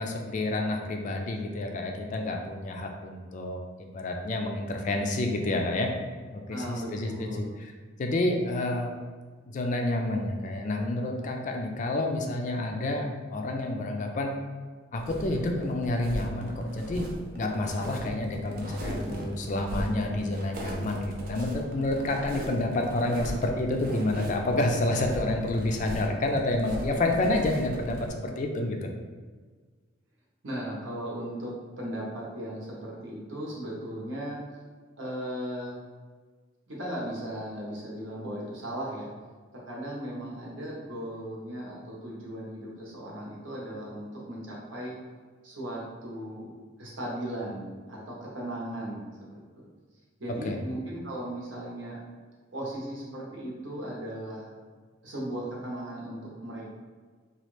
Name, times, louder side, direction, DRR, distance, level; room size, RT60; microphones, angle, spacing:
voice 1, 0.0-5.9 6.3-7.7 8.0-8.9 9.5-14.3 14.9-17.1 17.3-28.9 50.4-50.6, left 2 dB, 40° left, 2 dB, 0.4 m, -29 dB
voice 2, 6.5-7.5 30.4-31.5 31.8-34.4 35.0-35.8 36.7-39.1 39.5-45.0 45.4-46.5 46.8-49.4 50.2-52.0 52.5-54.5 55.0-56.7, right 1 dB, 80° right, -5 dB, 1.0 m, -37 dB
sound 1, 14.9-28.1, equal, 50° right, 0.5 m, -38 dB
3.0 x 2.4 x 3.2 m, 1.5 s
head